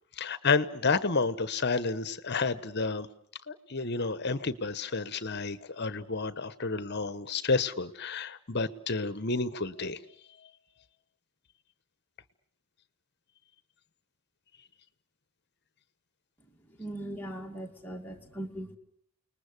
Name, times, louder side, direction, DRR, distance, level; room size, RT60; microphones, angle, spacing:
voice 1, 0.2-3.1 3.5-10.0, left 4 dB, 50° left, 15 dB, 1.1 m, -30 dB
voice 2, 16.8-18.8, right 1 dB, 10° left, 0 dB, 2.4 m, -39 dB
29.5 x 20.0 x 8.3 m, 0.69 s
head